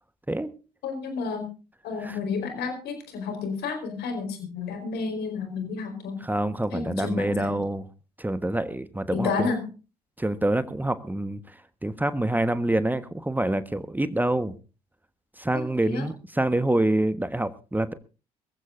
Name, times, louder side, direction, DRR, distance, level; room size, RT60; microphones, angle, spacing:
voice 1, 0.8-1.5 1.8-6.2 6.7-7.6 9.1-9.7 15.5-16.1, left 5 dB, 65° left, 6 dB, 4.6 m, -31 dB
voice 2, 6.2-7.8 8.2-9.5 10.2-14.6 15.4-17.9, right 1 dB, 10° right, 12 dB, 1.3 m, -26 dB
23.5 x 15.0 x 2.6 m, 0.33 s
figure-of-eight pair, 45°, 18 cm